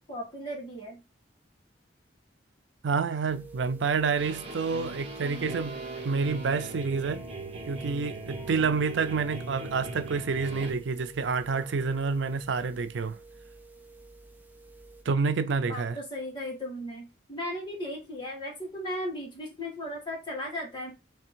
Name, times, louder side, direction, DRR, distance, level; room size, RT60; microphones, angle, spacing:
voice 1, 0.1-1.0 15.7-20.9, left 1 dB, 25° left, 1.9 m, -36 dB
voice 2, 2.8-7.2 7.7-13.2 15.1-16.0, right 5 dB, 90° right, 0.5 m, -28 dB
sound 1, 3.3-15.0, right 3 dB, 10° right, 0.5 m, -51 dB
sound 2, 4.2-10.7, right 2 dB, 35° right, 1.4 m, -39 dB
3.5 x 3.4 x 4.5 m
head